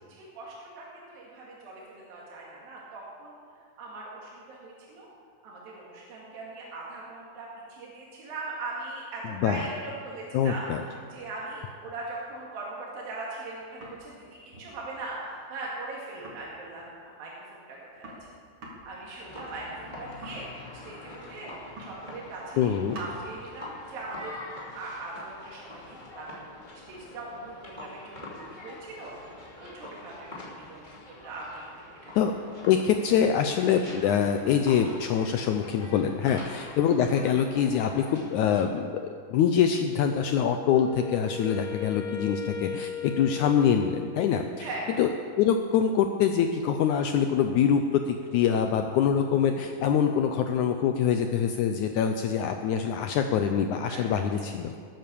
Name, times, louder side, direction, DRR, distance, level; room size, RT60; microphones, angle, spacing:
voice 1, 0.1-3.4 3.8-5.1 5.4-18.3 18.9-20.5 20.8-21.5 21.8-24.4 24.7-26.5 26.9-29.1 29.6-32.2 36.2-36.5 44.3-44.8 53.9-54.0 54.3-54.4, right 2 dB, 80° right, -5 dB, 4.0 m, -40 dB
voice 2, 10.3-10.8 22.6-23.0 32.1-32.3 32.7-38.9 39.3-44.7 45.0-45.1 45.4-54.7, left 8 dB, 75° left, 6 dB, 1.8 m, -24 dB
sound 1, 13.4-14.2 14.5-14.8 15.0-15.1 15.4-15.5 15.7-15.8 16.1-17.0 17.4-17.5 17.7-21.3 21.6-22.3 22.6-23.2 24.2-26.0, right 1 dB, 40° right, 3.3 m, -48 dB
sound 2, 19.2-38.6, left 2 dB, 15° left, 2.5 m, -45 dB
Wind instrument woodwind instrument, 40.0-44.4, left 6 dB, 55° left, 3.3 m, -38 dB
19.5 x 9.3 x 6.9 m, 2.2 s
omnidirectional pair, 4.0 m